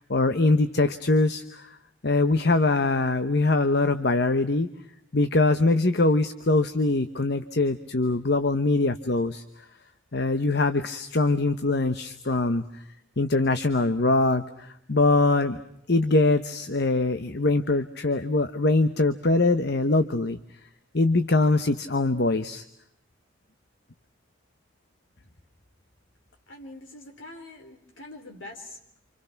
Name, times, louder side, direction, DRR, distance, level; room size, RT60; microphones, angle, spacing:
voice 1, 0.0-1.7 2.0-4.7 5.1-9.4 10.1-12.8 13.2-15.6 15.9-20.4 20.9-22.6, left 2 dB, 50° left, 10 dB, 1.0 m, -23 dB
voice 2, 26.5-28.8, left 2 dB, 70° left, 2 dB, 3.8 m, -44 dB
29.0 x 27.0 x 5.9 m, 0.73 s
head